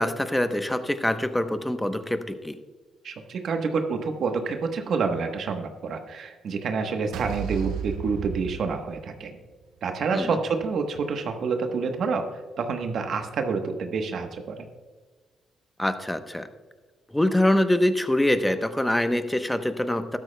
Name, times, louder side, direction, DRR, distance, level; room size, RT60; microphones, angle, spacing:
voice 1, 0.0-2.6 10.1-10.4 15.8-16.5 17.1-20.2, left 1 dB, 5° left, 9 dB, 0.8 m, -24 dB
voice 2, 3.0-9.4 9.8-14.6, right 5 dB, 60° right, 5 dB, 1.1 m, -28 dB
sound 1, 7.1-9.5, right 7 dB, 85° right, 1.0 m, -33 dB
13.0 x 12.5 x 2.2 m, 1.3 s
cardioid pair, 90°, 0 cm